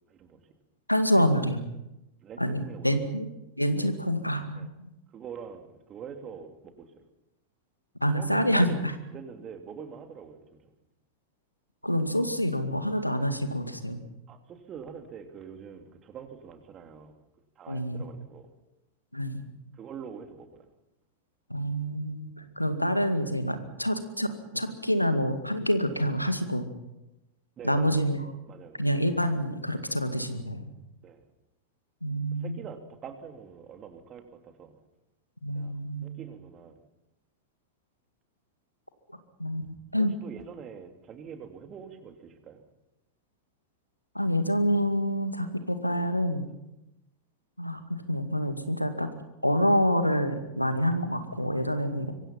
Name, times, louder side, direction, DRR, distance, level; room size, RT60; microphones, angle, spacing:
voice 1, 0.1-0.5 1.1-1.3 2.2-3.1 3.8-3.9 4.5-4.7 5.1-7.0 8.1-10.7 14.3-17.2 17.6-18.5 19.7-20.7 27.6-28.0 28.5-28.8 31.0-31.2 32.4-34.8 35.5-36.8 39.9-42.6 51.6-51.8, right 7 dB, 30° right, 6 dB, 3.0 m, -45 dB
voice 2, 0.9-1.6 2.4-3.3 3.6-4.9 8.0-8.8 11.8-14.0 17.7-18.0 19.1-19.4 21.5-26.7 27.6-28.2 28.8-30.7 32.0-32.6 35.4-36.1 39.4-40.1 44.1-46.5 47.6-49.1 49.4-52.1, equal, 90° left, 9 dB, 2.1 m, -27 dB
25.0 x 24.5 x 5.9 m, 0.92 s
figure-of-eight pair, 90°, 0 cm